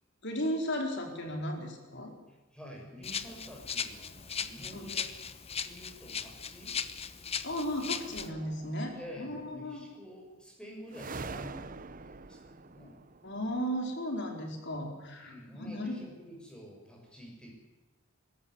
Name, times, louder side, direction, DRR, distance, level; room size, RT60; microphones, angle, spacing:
voice 1, 0.2-2.1 4.7-4.9 7.4-9.9 13.2-16.0, equal, 55° left, 3 dB, 4.5 m, -35 dB
voice 2, 2.3-5.1 5.6-6.7 8.9-13.0 15.2-17.6, equal, 5° left, -1 dB, 6.3 m, -49 dB
Rattle (instrument), 3.0-8.3, left 7 dB, 30° left, 1.0 m, -38 dB
sound 1, 8.2-9.3 10.9-13.8, right 4 dB, 40° right, 0.8 m, -45 dB
22.0 x 13.5 x 9.9 m, 1.2 s
head